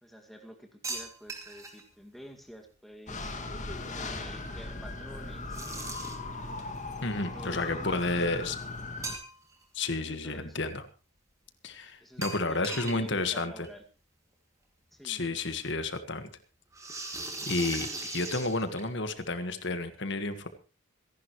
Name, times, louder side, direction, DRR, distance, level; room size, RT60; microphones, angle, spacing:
voice 1, 0.0-3.4 3.9-5.6 7.2-8.5 10.0-10.6 12.0-13.8 14.9-15.2, equal, ahead, 2 dB, 2.1 m, -49 dB
sound 1, 0.8-1.8 5.5-6.3 9.0-9.6 10.0-10.1 12.2-13.0 13.3-13.4 13.6-13.7 14.9-15.0 16.7-19.1, right 2 dB, 15° right, 2.4 m, -38 dB
sound 2, 3.1-9.2, left 3 dB, 35° left, 2.2 m, -38 dB
voice 2, 7.0-8.5 9.7-10.8 11.6-13.5 15.0-16.3 17.4-20.5, left 2 dB, 55° left, 9 dB, 1.6 m, -31 dB
26.5 x 11.0 x 3.2 m, 0.34 s
head